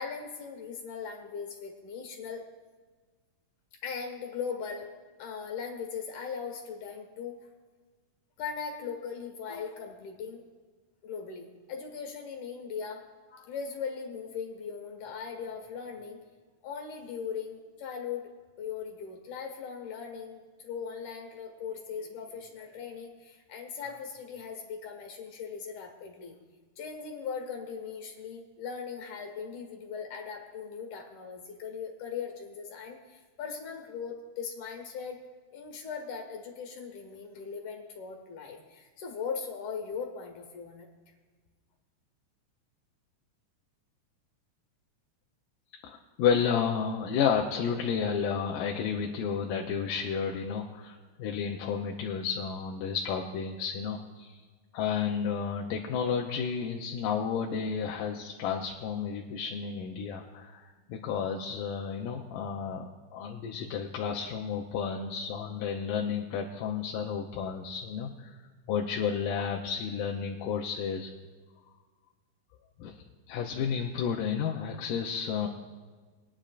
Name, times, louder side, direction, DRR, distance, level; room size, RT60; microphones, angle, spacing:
voice 1, 0.0-2.5 3.8-4.9 5.2-7.4 8.4-10.4 11.0-16.2 16.6-18.3 18.6-26.4 26.8-35.2 35.5-40.9, left 6 dB, 70° left, 3 dB, 2.9 m, -39 dB
voice 2, 45.8-54.4 54.7-68.4 68.7-71.1 72.8-73.0 73.3-75.5, left 7 dB, 90° left, 1 dB, 2.3 m, -31 dB
21.5 x 10.0 x 2.5 m, 1.4 s
omnidirectional pair, 3.7 m